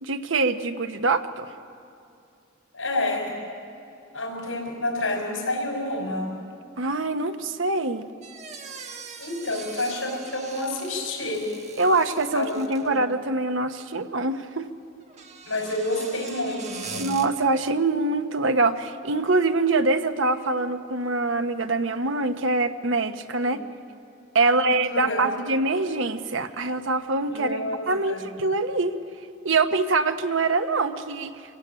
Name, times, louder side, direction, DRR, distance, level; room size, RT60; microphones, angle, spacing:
voice 1, 0.0-1.5 6.8-8.1 11.8-14.7 17.0-23.6 24.3-29.0 29.4-31.3, right 3 dB, 70° right, 9 dB, 1.0 m, -24 dB
voice 2, 2.7-3.3 4.1-6.3 9.2-11.5 12.3-12.5 12.8-13.0 15.5-17.1 23.4-23.5 24.5-25.3 27.3-28.2, left 2 dB, 80° left, 1 dB, 5.3 m, -29 dB
sound 1, 8.2-13.0 15.0-17.3, right 5 dB, 35° right, 1.4 m, -41 dB
25.5 x 15.5 x 8.8 m, 2.6 s
head